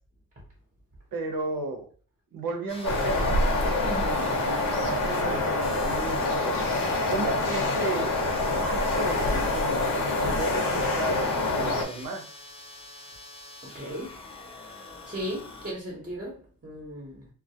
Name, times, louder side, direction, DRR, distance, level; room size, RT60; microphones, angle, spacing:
voice 1, 1.1-1.9 2.3-3.5 4.6-6.6 7.1-8.1 8.6-12.3, right 2 dB, 75° right, 0.7 m, -34 dB
sound 1, 2.7-15.7, left 3 dB, 15° left, 0.3 m, -44 dB
sound 2, 2.8-11.8, left 2 dB, 55° left, 0.7 m, -26 dB
voice 2, 3.8-4.3 13.6-14.2 15.1-17.3, equal, 25° right, 0.7 m, -36 dB
2.3 x 2.0 x 2.7 m
cardioid pair, 110°, 37 cm